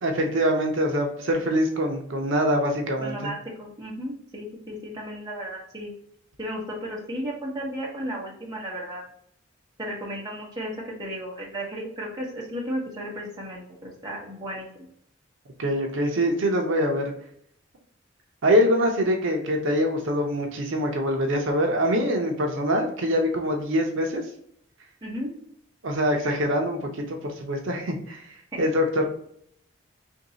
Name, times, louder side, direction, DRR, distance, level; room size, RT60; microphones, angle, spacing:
voice 1, 0.0-3.3 15.6-17.1 18.4-24.2 25.8-29.0, equal, 70° right, 2 dB, 0.6 m, -24 dB
voice 2, 3.0-5.9 6.4-9.0 9.8-14.9 25.0-25.3 28.5-28.6, equal, 20° right, -4 dB, 1.0 m, -34 dB
3.0 x 2.6 x 3.8 m, 0.68 s
head